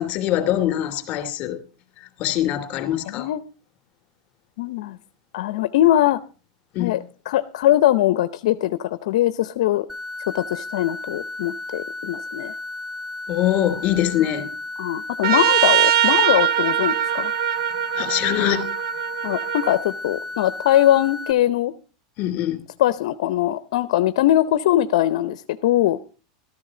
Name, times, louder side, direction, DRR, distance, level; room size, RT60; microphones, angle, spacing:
voice 1, 0.0-1.6 2.2-3.3 6.7-7.0 13.3-14.5 17.9-18.7 22.2-22.6, left 12 dB, 40° left, 2.9 m, -23 dB
voice 2, 3.1-3.4 4.6-5.0 5.3-6.2 6.8-9.9 10.3-12.5 14.8-17.3 19.2-21.7 22.8-26.0, left 13 dB, 75° left, 0.6 m, -21 dB
sound 1, 9.9-21.3, left 2 dB, 5° right, 1.0 m, -34 dB
Trumpet, 15.2-19.8, right 11 dB, 65° right, 0.9 m, -21 dB
13.5 x 13.5 x 3.8 m
supercardioid pair, 135°, 4 cm